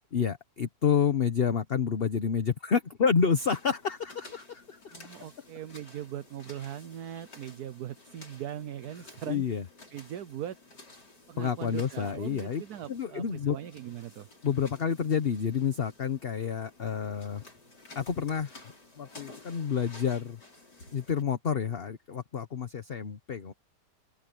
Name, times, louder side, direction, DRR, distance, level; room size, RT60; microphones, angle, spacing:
voice 1, 0.1-4.9 9.3-9.6 11.4-12.6 12.9-13.6 14.4-17.4 17.9-18.5 19.0-20.4 20.9-23.5, left 7 dB, 40° left, 1.1 m, -29 dB
sound 1, 3.4-21.2, left 2 dB, 75° left, 6.8 m, -53 dB
voice 2, 4.9-9.4 9.9-10.6 11.3-14.3, right 11 dB, 65° right, 1.3 m, -40 dB
open air
omnidirectional pair, 1.8 m